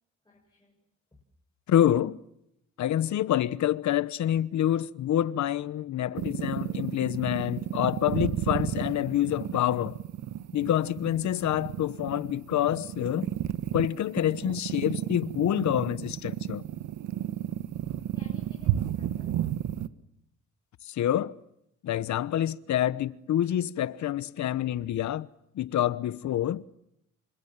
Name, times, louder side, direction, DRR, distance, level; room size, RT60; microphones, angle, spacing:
voice 1, 0.2-0.8 1.1-1.2 17.9-19.8, left 2 dB, 15° left, 7.1 m, -56 dB
voice 2, 1.7-2.2 2.8-10.0 10.5-13.3 13.7-16.6 20.8-21.4 21.8-25.3 25.5-26.6, left 11 dB, 65° left, 1.1 m, -27 dB
sound 1, 6.1-19.9, right 12 dB, 85° right, 1.4 m, -32 dB
29.0 x 26.0 x 7.5 m
cardioid pair, 90°, 30 cm